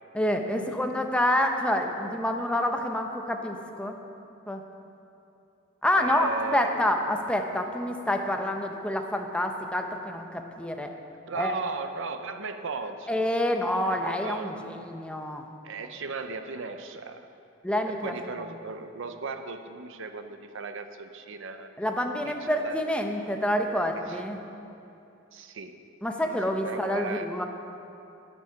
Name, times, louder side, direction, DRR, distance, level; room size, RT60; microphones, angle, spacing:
voice 1, 0.1-4.0 4.5-4.6 5.8-10.9 11.3-11.5 13.1-15.4 17.6-18.1 21.8-24.4 26.0-27.5, left 1 dB, 5° left, 4 dB, 0.7 m, -27 dB
voice 2, 6.0-6.9 11.3-13.3 13.8-14.6 15.6-17.3 17.9-21.7 22.2-22.8 24.1-24.2 25.3-25.8 26.2-27.3, right 4 dB, 65° right, 8 dB, 0.7 m, -36 dB
11.0 x 10.0 x 5.8 m, 2.8 s
head